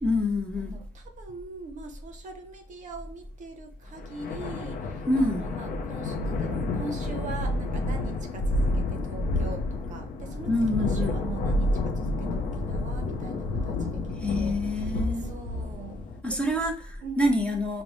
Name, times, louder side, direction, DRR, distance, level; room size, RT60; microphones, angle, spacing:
voice 1, 0.0-0.8 5.1-5.5 10.5-11.2 14.2-15.3 16.2-17.8, left 1 dB, 5° left, 0.7 m, -26 dB
voice 2, 0.7-16.0 16.3-16.6 17.0-17.4, right 3 dB, 45° right, 0.6 m, -42 dB
sound 1, 4.0-16.2, left 2 dB, 55° left, 0.5 m, -30 dB
5.1 x 2.1 x 2.9 m
cardioid pair, 110°, 17 cm